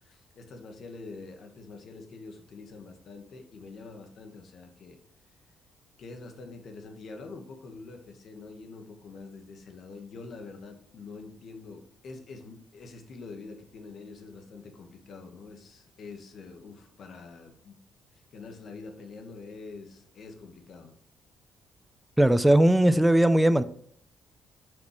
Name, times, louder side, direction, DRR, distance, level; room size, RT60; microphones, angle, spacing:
voice 1, 0.0-5.0 6.0-17.8 18.1-20.9, left 4 dB, 60° left, 1.2 m, -45 dB
voice 2, 22.2-23.6, right 1 dB, 5° right, 0.3 m, -19 dB
6.7 x 5.1 x 3.0 m
cardioid pair, 90°, 0 cm